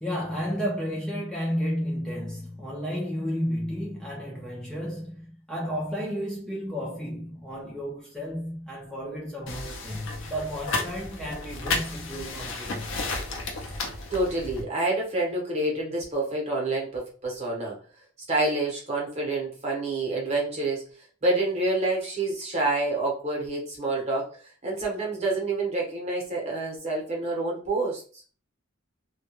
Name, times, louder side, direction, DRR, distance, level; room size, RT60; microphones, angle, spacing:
voice 1, 0.0-13.0, equal, ahead, 0.4 m, -32 dB
sound 1, 9.5-14.6, left 3 dB, 60° left, 0.5 m, -33 dB
voice 2, 14.1-17.8 18.3-20.9 21.2-28.2, right 2 dB, 30° right, 0.8 m, -28 dB
2.2 x 2.1 x 2.9 m
head